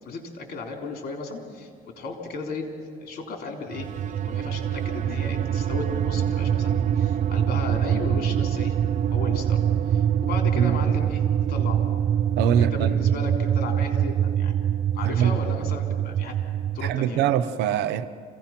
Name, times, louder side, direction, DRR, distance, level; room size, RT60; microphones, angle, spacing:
voice 1, 0.0-1.7 2.0-8.7 9.1-9.6 9.9-11.8 12.5-14.6 14.9-16.4 16.7-17.2, left 3 dB, 65° left, 3 dB, 3.7 m, -35 dB
sound 1, 3.7-17.0, right 9 dB, 45° right, 0.5 m, -24 dB
voice 2, 12.4-13.0 15.0-15.4 16.8-18.0, right 9 dB, 85° right, 11 dB, 0.9 m, -23 dB
26.5 x 17.0 x 6.0 m, 2.2 s
cardioid pair, 110°, 17 cm